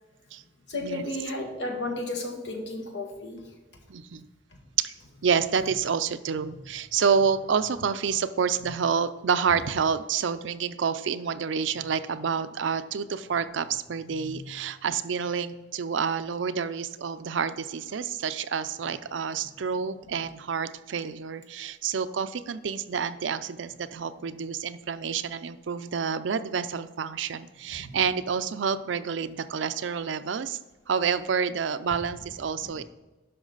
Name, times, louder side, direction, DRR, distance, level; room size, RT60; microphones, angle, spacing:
voice 1, 0.7-3.4 6.5-6.6 14.2-14.5 27.8-28.0 32.6-32.7, left 2 dB, 65° left, 2 dB, 1.7 m, -33 dB
voice 2, 3.9-4.3 4.8-4.9 5.2-30.6 30.9-32.8, right 6 dB, 85° right, 12 dB, 0.5 m, -28 dB
11.5 x 5.8 x 4.0 m, 1.2 s
head